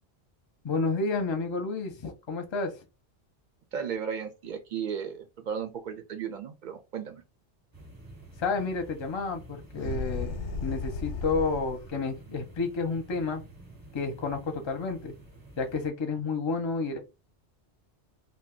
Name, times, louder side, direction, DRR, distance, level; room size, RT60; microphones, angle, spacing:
voice 1, 0.6-2.7 8.4-10.3 10.6-13.4 13.9-15.1 15.6-17.0, left 4 dB, 35° left, 0.5 m, -30 dB
voice 2, 3.7-7.2, right 7 dB, 55° right, 0.6 m, -35 dB
sound 1, 7.7-15.9, right 1 dB, 20° right, 0.8 m, -50 dB
sound 2, 9.7-11.9, left 4 dB, 90° left, 0.9 m, -35 dB
2.5 x 2.2 x 3.7 m
omnidirectional pair, 1.1 m